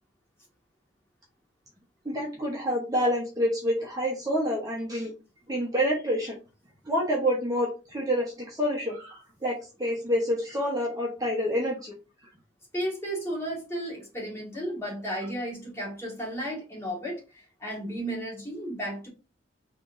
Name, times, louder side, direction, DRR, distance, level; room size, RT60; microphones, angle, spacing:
voice 1, 2.0-5.1 5.5-6.4 6.8-11.9, equal, 20° right, -2 dB, 0.9 m, -28 dB
voice 2, 12.7-17.2 17.6-19.1, equal, 15° left, -3 dB, 1.7 m, -33 dB
4.2 x 3.1 x 2.6 m, 0.30 s
head